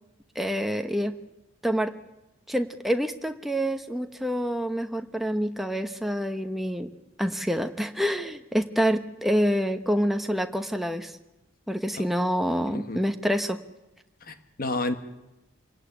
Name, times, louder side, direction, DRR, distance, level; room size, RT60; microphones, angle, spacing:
voice 1, 0.3-1.1 1.6-1.9 2.5-6.9 7.2-11.1 11.7-13.6, equal, ahead, 7 dB, 1.0 m, -27 dB
voice 2, 12.7-13.0 14.2-15.0, left 2 dB, 40° left, 9 dB, 1.5 m, -31 dB
26.5 x 17.5 x 10.0 m, 1.0 s
head